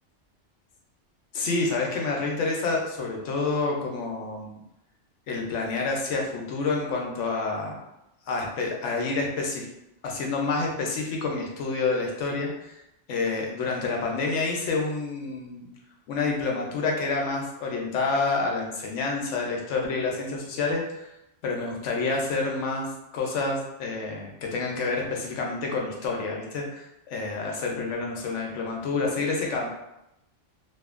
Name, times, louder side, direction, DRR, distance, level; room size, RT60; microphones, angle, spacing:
voice 1, 1.3-4.6 5.3-7.8 8.3-9.7 10.0-12.8 13.1-15.7 16.1-21.0 21.4-29.7, left 3 dB, 80° left, 0 dB, 0.9 m, -28 dB
2.7 x 2.5 x 2.4 m, 0.86 s
omnidirectional pair, 1.2 m